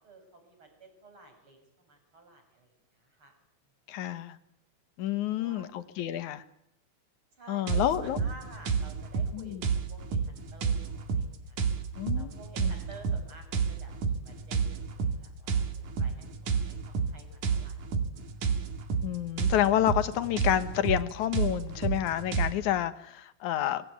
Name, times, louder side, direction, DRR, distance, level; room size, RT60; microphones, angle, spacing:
voice 1, 0.0-3.3 5.3-5.7 7.4-9.5 9.9-11.6 12.1-18.0 18.4-18.5, right 3 dB, 45° right, 4 dB, 7.8 m, -52 dB
voice 2, 3.9-4.4 5.0-6.4 7.5-8.2 9.3-9.6 12.0-12.3 12.6-12.7 19.0-23.8, left 12 dB, 90° left, 12 dB, 2.6 m, -29 dB
sound 1, 7.7-22.5, right 5 dB, 85° right, 3.5 m, -30 dB
24.5 x 20.0 x 9.4 m, 0.79 s
omnidirectional pair, 3.3 m